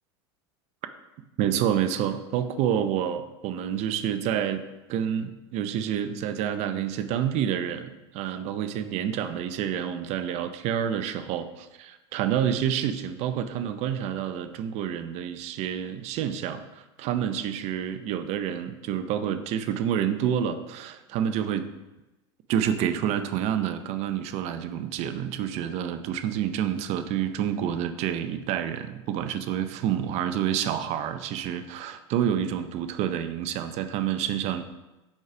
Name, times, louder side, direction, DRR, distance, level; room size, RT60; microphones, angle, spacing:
voice 1, 1.4-21.7 22.5-34.6, right 9 dB, 50° right, 10 dB, 0.6 m, -28 dB
5.4 x 4.7 x 5.0 m, 1.0 s
supercardioid pair, 115°, 15 cm